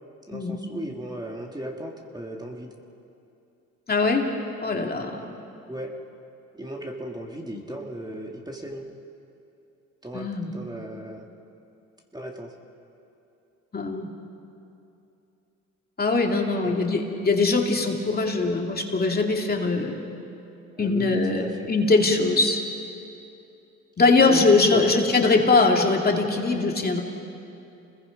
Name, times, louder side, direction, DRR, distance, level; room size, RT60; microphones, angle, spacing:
voice 1, 0.3-2.7 5.7-5.9 6.6-8.9 10.0-11.2 12.1-12.5 16.6-16.9 20.8-21.7 24.2-24.4 24.7-24.8, right 1 dB, 15° right, 1 dB, 2.2 m, -36 dB
voice 2, 3.9-4.2 4.6-5.2 10.1-10.5 13.7-14.1 16.0-19.9 20.8-22.6 24.0-27.0, left 3 dB, 30° left, 1 dB, 2.6 m, -21 dB
30.0 x 21.0 x 5.2 m, 2.7 s
cardioid pair, 90°, 30 cm